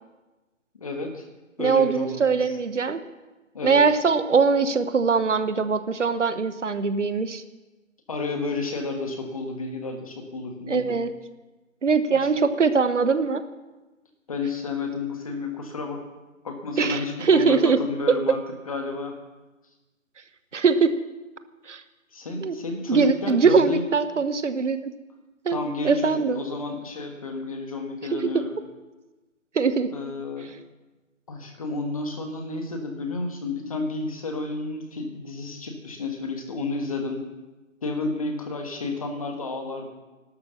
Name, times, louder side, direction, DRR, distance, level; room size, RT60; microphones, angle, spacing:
voice 1, 0.8-1.3 1.6-2.6 3.5-3.8 8.1-11.0 12.1-12.3 14.3-16.0 16.4-18.4 18.7-19.2 22.1-23.9 25.5-28.5 29.9-30.6 31.3-37.2 37.8-39.9, left 3 dB, 25° left, 4 dB, 1.5 m, -31 dB
voice 2, 1.6-3.0 3.6-7.4 10.7-11.1 11.8-13.4 16.8-17.8 20.5-20.9 21.7-21.8 22.4-22.6 22.9-24.8 25.4-25.6 25.8-26.4 28.1-28.3 29.5-29.9, right 5 dB, 60° right, 11 dB, 1.1 m, -21 dB
13.0 x 12.5 x 6.8 m, 1.1 s
hypercardioid pair, 170°, 40 cm